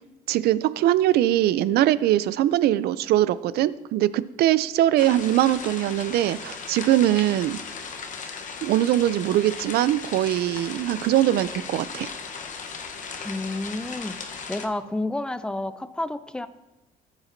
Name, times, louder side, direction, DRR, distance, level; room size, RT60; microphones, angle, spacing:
voice 1, 0.3-7.6 8.6-12.1, right 13 dB, 70° right, 17 dB, 0.4 m, -22 dB
sound 1, 5.0-14.7, left 5 dB, 50° left, 1.0 m, -37 dB
voice 2, 13.2-14.2 14.5-16.5, left 2 dB, 5° left, 13 dB, 0.4 m, -30 dB
14.0 x 7.1 x 2.6 m, 1.1 s
cardioid pair, 110°, 17 cm